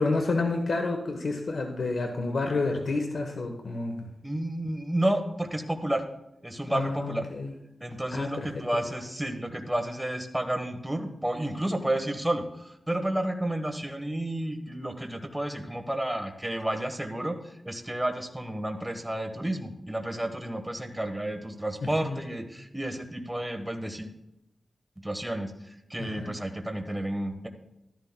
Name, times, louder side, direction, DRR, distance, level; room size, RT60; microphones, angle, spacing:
voice 1, 0.0-4.1 6.7-7.5 8.1-8.6 22.0-22.2 26.0-26.3, left 3 dB, 70° left, 3 dB, 1.0 m, -29 dB
voice 2, 4.2-6.0 6.4-7.2 7.8-24.1 25.0-27.5, right 1 dB, 10° right, 5 dB, 1.1 m, -31 dB
13.5 x 12.5 x 2.2 m, 0.90 s
wide cardioid pair, 100°, 0 cm